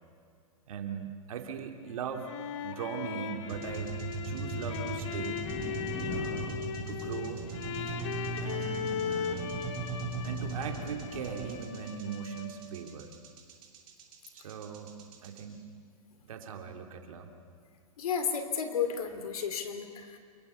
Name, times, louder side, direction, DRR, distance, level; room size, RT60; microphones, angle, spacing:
voice 1, 0.7-2.3 2.6-5.5 6.1-7.4 8.4-9.6 10.2-13.1 14.3-14.9 15.2-15.6 16.2-17.3, right 7 dB, 65° right, 4 dB, 3.2 m, -40 dB
sound 1, 1.9-12.7, left 7 dB, 50° left, 2.0 m, -38 dB
sound 2, 3.5-15.4, right 4 dB, 35° right, 7.9 m, -39 dB
sound 3, 4.5-11.0 11.9-12.0, left 2 dB, 25° left, 5.6 m, -45 dB
voice 2, 18.0-20.2, left 7 dB, 75° left, 8 dB, 3.3 m, -32 dB
28.5 x 23.0 x 7.0 m, 2.2 s
hypercardioid pair, 145°, 19 cm